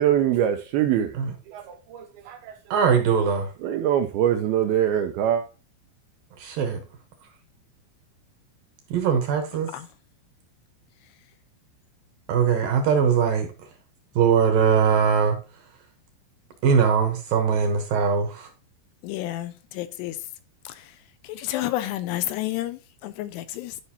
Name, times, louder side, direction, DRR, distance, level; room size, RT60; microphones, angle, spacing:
voice 1, 0.0-1.2 1.5-2.6 3.6-5.4, right 10 dB, 85° right, 2.3 m, -23 dB
voice 2, 2.7-3.5 6.4-6.8 8.9-9.7 12.3-13.5 14.2-15.4 16.6-18.5, right 6 dB, 70° right, 2.3 m, -21 dB
voice 3, 9.5-9.9 19.0-20.2 20.7-21.0 21.2-23.8, left 14 dB, 80° left, 2.6 m, -31 dB
11.5 x 5.5 x 2.8 m
omnidirectional pair, 5.0 m